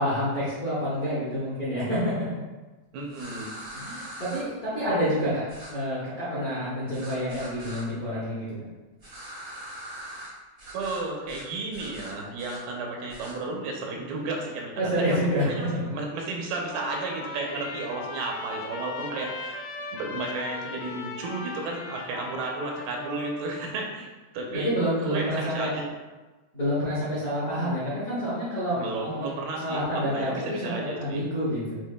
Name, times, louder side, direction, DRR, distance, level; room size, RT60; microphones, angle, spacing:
voice 1, 0.0-2.1 3.7-8.4 14.7-15.8 24.6-25.8 26.5-29.3 29.6-31.8, equal, 50° left, -11 dB, 1.0 m, -28 dB
voice 2, 2.9-3.5 10.7-15.2 15.5-19.6 19.9-24.1 24.3-25.9 28.7-31.3, right 3 dB, 90° right, 0 dB, 2.6 m, -33 dB
sound 1, 3.1-4.4 5.5-5.7 6.9-7.8 9.0-10.3 10.6-11.0 11.3-11.4 11.7-12.6 13.1-13.3, right 1 dB, 65° right, 0.8 m, -41 dB
Trumpet, 16.5-23.7, left 3 dB, 80° left, 2.4 m, -38 dB
7.5 x 2.9 x 2.2 m, 1.2 s
omnidirectional pair, 4.1 m